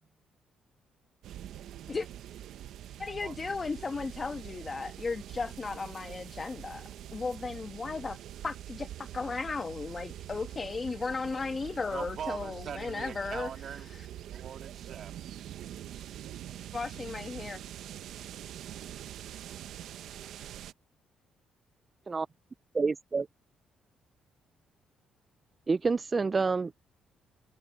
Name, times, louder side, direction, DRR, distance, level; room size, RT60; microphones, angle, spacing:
sound 1, 1.2-20.7, right 11 dB, 80° right, 0.9 m, -44 dB
voice 1, 3.0-8.2 8.4-13.5 13.9-14.1 16.7-17.6, left 4 dB, 30° left, 1.4 m, -35 dB
voice 2, 11.9-13.9 14.3-15.4, right 8 dB, 60° right, 2.3 m, -42 dB
voice 3, 22.7-23.3 25.7-26.7, right 4 dB, 30° right, 0.3 m, -28 dB
cardioid pair, 90°, 0 cm